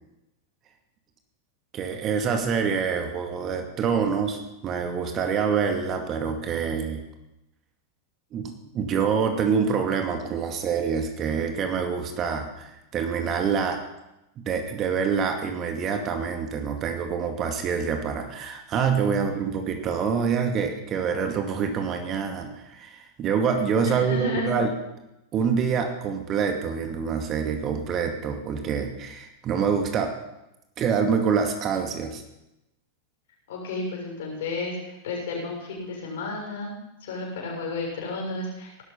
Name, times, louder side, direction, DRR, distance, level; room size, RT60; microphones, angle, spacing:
voice 1, 1.7-7.0 8.3-13.8 14.4-24.7 25.3-30.1 30.8-32.2, right 6 dB, 30° right, 5 dB, 2.2 m, -26 dB
voice 2, 23.9-24.5 33.5-36.7 37.0-38.8, left 2 dB, 55° left, -1 dB, 6.7 m, -32 dB
19.0 x 12.0 x 5.7 m, 0.92 s
figure-of-eight pair, 90°, 0 cm